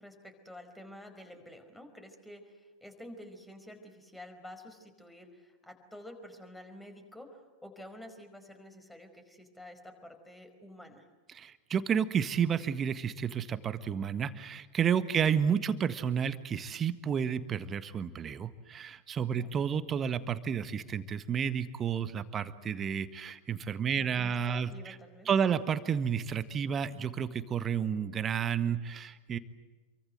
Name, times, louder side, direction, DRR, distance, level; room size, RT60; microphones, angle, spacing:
voice 1, 0.0-11.1 19.3-19.5 23.9-25.3, left 1 dB, 5° left, 7 dB, 4.9 m, -50 dB
voice 2, 11.3-24.9 25.3-29.4, right 7 dB, 25° right, 13 dB, 1.6 m, -31 dB
28.5 x 24.0 x 8.0 m, 1.3 s
figure-of-eight pair, 90°, 0 cm